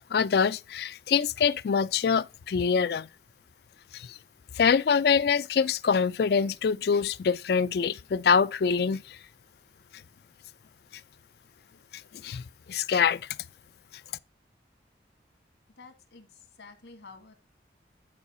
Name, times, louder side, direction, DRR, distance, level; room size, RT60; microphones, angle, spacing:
voice 1, 0.1-3.1 3.9-4.1 4.6-9.0 12.2-12.4 12.7-13.2, left 6 dB, 60° left, 0.3 m, -24 dB
voice 2, 15.8-17.3, left 4 dB, 85° left, 1.7 m, -50 dB
9.8 x 4.7 x 4.2 m
head